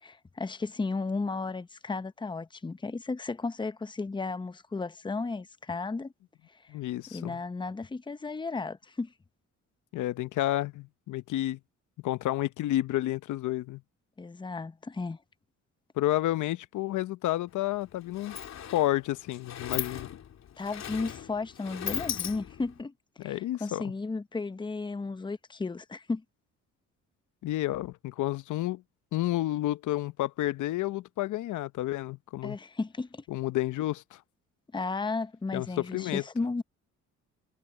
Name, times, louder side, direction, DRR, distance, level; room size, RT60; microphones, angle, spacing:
voice 1, 0.0-6.1 6.5-6.6 7.1-9.1 14.2-15.2 20.6-22.9 23.2-26.2 32.4-33.2 34.7-36.6, left 3 dB, 15° left, 0.8 m, -34 dB
voice 2, 6.7-7.4 9.9-11.6 12.0-13.8 16.0-18.4 18.7-20.1 23.2-23.8 27.4-28.8 29.1-32.6 33.3-34.2 35.5-36.2, left 15 dB, 80° left, 0.8 m, -30 dB
Sliding door, 17.5-17.6 17.9-22.8, left 9 dB, 60° left, 2.8 m, -38 dB
cardioid pair, 90°, 30 cm